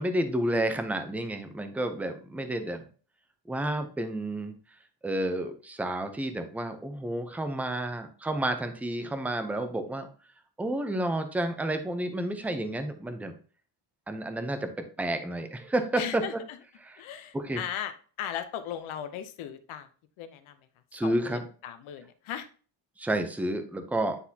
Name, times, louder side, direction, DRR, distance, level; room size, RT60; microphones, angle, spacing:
voice 1, 0.0-2.9 3.5-4.5 5.0-10.1 10.6-13.3 14.1-14.7 15.0-16.2 16.8-17.0 17.3-17.6 20.9-21.4 23.0-24.2, right 1 dB, 5° right, 7 dB, 0.5 m, -30 dB
voice 2, 15.9-16.3 17.0-19.9 20.2-20.5 21.0-22.5, left 10 dB, 85° left, 9 dB, 0.8 m, -37 dB
9.7 x 4.0 x 2.8 m, 0.40 s
cardioid pair, 170°, 47 cm